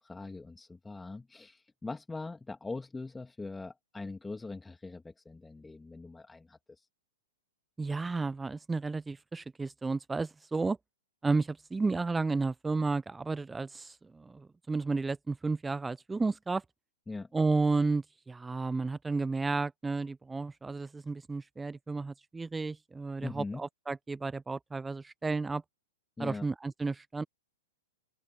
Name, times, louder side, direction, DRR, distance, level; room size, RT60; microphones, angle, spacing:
voice 1, 0.0-6.9 17.1-17.3 23.2-23.6 26.2-26.5, left 3 dB, 10° left, 2.6 m, -42 dB
voice 2, 7.8-10.8 11.2-16.6 17.3-25.6 26.2-27.2, right 3 dB, 10° right, 1.0 m, -32 dB
open air
figure-of-eight pair, 105°, 0 cm